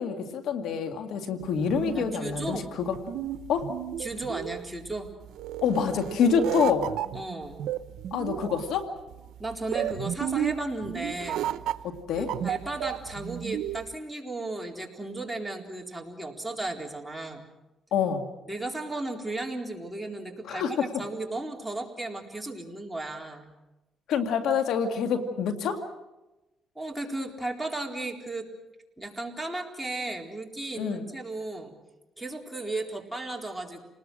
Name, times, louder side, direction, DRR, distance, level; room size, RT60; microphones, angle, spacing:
voice 1, 0.0-3.0 3.5-3.7 5.6-6.9 8.1-8.9 11.8-12.3 17.9-18.3 20.5-20.8 24.1-25.9 30.8-31.0, left 6 dB, 80° left, 6 dB, 2.2 m, -27 dB
sound 1, 1.4-13.9, right 11 dB, 85° right, 0.9 m, -33 dB
voice 2, 1.9-2.7 4.0-5.1 7.1-7.6 9.4-11.5 12.2-17.5 18.5-23.5 26.8-28.5 29.0-31.7 32.2-33.9, right 2 dB, 5° right, 0 dB, 4.0 m, -35 dB
29.0 x 20.0 x 6.3 m, 1.0 s
cardioid pair, 90°, 0 cm